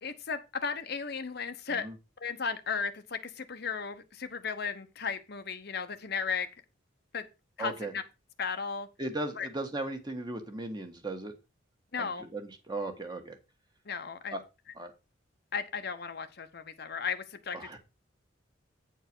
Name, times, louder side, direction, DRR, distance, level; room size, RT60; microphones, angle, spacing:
voice 1, 0.0-1.9 2.2-6.5 7.1-7.3 7.6-8.0 8.4-8.9 9.4-9.5 11.9-12.3 13.9-14.3 15.5-17.6, left 5 dB, 55° left, 1.0 m, -35 dB
voice 2, 7.6-7.9 9.0-11.4 12.0-13.4 14.3-14.4 14.7-14.9 17.5-17.8, right 2 dB, 20° right, 1.5 m, -37 dB
9.2 x 4.6 x 6.1 m
head